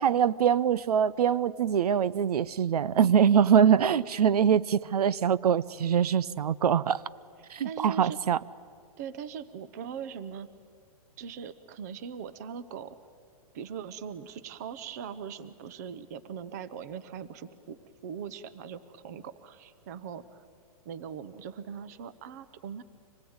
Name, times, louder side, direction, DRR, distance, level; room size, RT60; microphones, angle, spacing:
voice 1, 0.0-7.0 7.5-8.4, right 8 dB, 80° right, 0.7 m, -23 dB
voice 2, 7.6-8.3 9.0-10.5 11.2-13.0 13.5-17.8 18.0-20.4 20.8-22.8, right 7 dB, 25° right, 0.8 m, -40 dB
25.5 x 20.0 x 8.8 m
hypercardioid pair, 175°, 19 cm